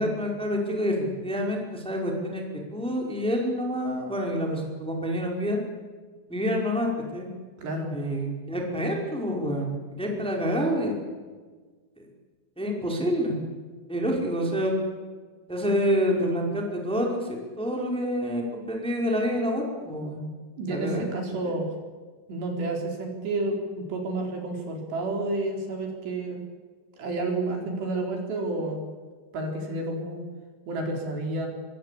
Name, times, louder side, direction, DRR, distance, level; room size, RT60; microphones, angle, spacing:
voice 1, 0.0-5.6 6.3-7.3 7.9-10.9 12.0-12.1 12.6-13.3 13.9-14.8 15.5-20.2 20.7-21.1 21.4-21.5, equal, ahead, 0 dB, 4.3 m, -27 dB
voice 2, 7.6-8.0 20.6-21.7 22.3-26.4 27.0-28.8 29.3-30.2 30.7-31.5, right 2 dB, 70° right, 2 dB, 6.2 m, -30 dB
26.0 x 23.5 x 8.5 m, 1.4 s
omnidirectional pair, 5.2 m